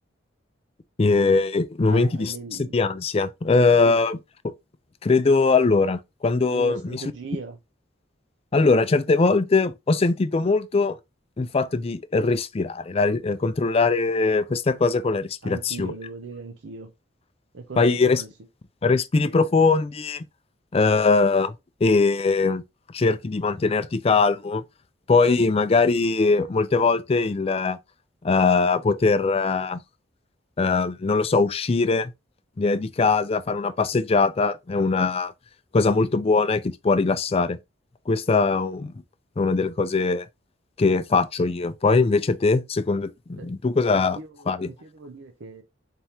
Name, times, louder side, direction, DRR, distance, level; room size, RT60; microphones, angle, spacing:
voice 1, 1.0-4.2 4.4-4.5 5.0-7.1 8.5-11.0 11.4-15.9 17.8-18.2 18.8-20.2 20.7-21.5 21.8-22.6 22.9-24.6 25.1-27.8 28.2-29.8 30.6-32.1 32.6-35.3 35.7-37.6 38.1-38.9 39.4-40.3 40.8-44.2 44.5-44.7, left 4 dB, 30° left, 0.4 m, -21 dB
voice 2, 1.9-2.7 3.8-4.0 6.5-7.6 15.4-16.9 17.5-18.3 43.4-43.5 44.1-44.3 44.6-45.6, right 4 dB, 80° right, 0.6 m, -38 dB
4.2 x 3.5 x 2.9 m
head